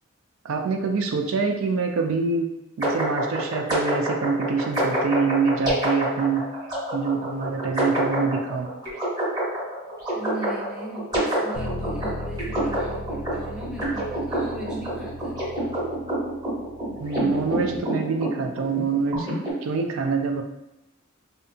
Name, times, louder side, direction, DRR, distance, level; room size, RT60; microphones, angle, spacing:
voice 1, 0.4-2.5 2.8-6.5 6.9-8.7 17.0-19.3 19.6-20.4, right 4 dB, 75° right, 4 dB, 0.3 m, -25 dB
sound 1, 2.8-19.5, right 1 dB, 20° right, 0.8 m, -27 dB
voice 2, 10.1-15.4, right 1 dB, 5° right, -4 dB, 0.4 m, -38 dB
Bass guitar, 11.5-17.8, left 1 dB, 80° left, 0.3 m, -37 dB
2.7 x 2.2 x 2.6 m, 0.90 s
head